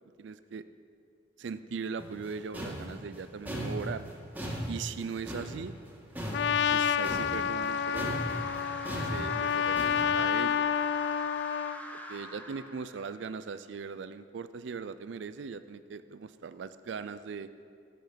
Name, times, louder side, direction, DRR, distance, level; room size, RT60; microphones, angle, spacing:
voice 1, 0.2-0.6 1.4-4.0 4.7-5.8 6.7-8.2 9.0-9.8 10.1-10.7 12.1-17.5, right 5 dB, 75° right, 13 dB, 0.4 m, -39 dB
sound 1, 2.0-7.7 7.9-10.1, equal, 10° right, 1.9 m, -37 dB
Trumpet, 6.3-11.8, left 8 dB, 65° left, 0.3 m, -29 dB
sound 2, 6.4-13.4, left 1 dB, 10° left, 0.9 m, -45 dB
17.0 x 7.9 x 5.1 m, 2.3 s
head